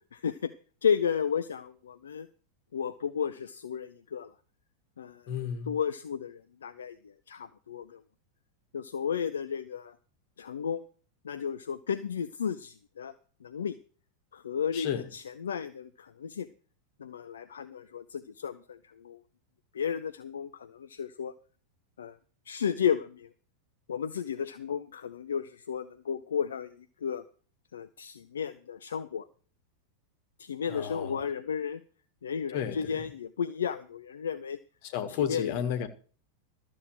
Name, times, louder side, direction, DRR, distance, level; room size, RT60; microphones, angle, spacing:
voice 1, 0.1-0.5 0.8-2.3 2.7-4.3 5.0-5.2 5.7-8.0 8.7-9.9 10.4-10.8 11.2-13.1 13.4-13.8 14.3-16.5 17.0-19.2 19.7-21.3 22.0-22.2 22.5-23.3 23.9-27.2 27.7-29.3 30.4-31.8 32.2-34.6 35.2-35.4, left 7 dB, 65° left, 0.6 m, -33 dB
voice 2, 5.3-5.8 14.7-15.1 30.7-31.3 32.5-33.1 34.8-35.9, left 9 dB, 50° left, 1.6 m, -33 dB
13.0 x 7.4 x 6.3 m
figure-of-eight pair, 90°, 0 cm